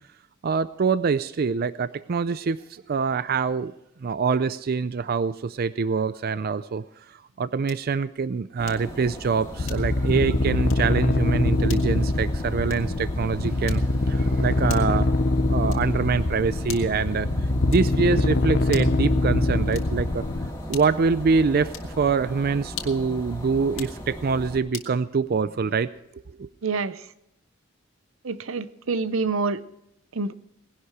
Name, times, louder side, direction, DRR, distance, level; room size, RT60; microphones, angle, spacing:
voice 1, 0.4-3.7 4.0-15.1 15.5-17.3 17.7-20.2 20.7-26.5, right 5 dB, 50° right, 15 dB, 0.4 m, -25 dB
sound 1, 7.6-8.0 8.7-9.0 9.6-10.1 10.6-10.9 11.7-12.0 12.7-13.0 13.7-14.1 14.7-15.1 15.7-16.0 16.7-17.1 17.7-18.1 18.7-19.0 19.7-20.1 20.7-21.1 21.7-22.0 22.7-23.1 23.7-24.0 24.7-25.0, left 9 dB, 75° left, 2.0 m, -41 dB
sound 2, 8.6-24.6, equal, 15° left, 2.8 m, -37 dB
sound 3, 9.6-20.5, left 2 dB, 55° left, 0.7 m, -24 dB
voice 2, 26.6-27.0 28.2-29.6 30.1-30.3, right 4 dB, 85° right, 15 dB, 0.7 m, -27 dB
19.0 x 11.5 x 4.8 m, 0.80 s
head